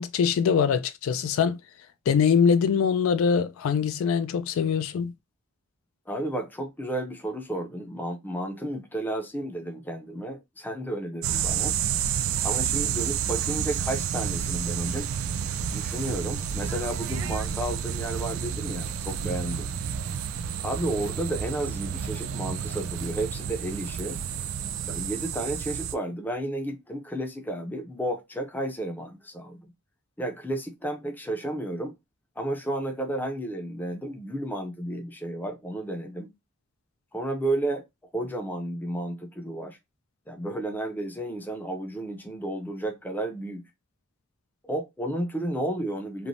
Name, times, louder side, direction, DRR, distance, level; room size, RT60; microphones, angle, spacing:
voice 1, 0.0-1.6 2.1-5.1, left 6 dB, 75° left, 0.3 m, -23 dB
voice 2, 6.1-11.8 12.4-15.1 15.6-19.7 20.6-24.2 24.8-29.7 30.2-31.9 32.4-36.3 37.1-37.8 38.1-39.8 40.3-43.6 44.6-46.3, right 1 dB, 10° left, 0.5 m, -32 dB
sound 1, 11.2-26.0, right 8 dB, 75° right, 0.3 m, -30 dB
3.1 x 2.1 x 2.6 m
head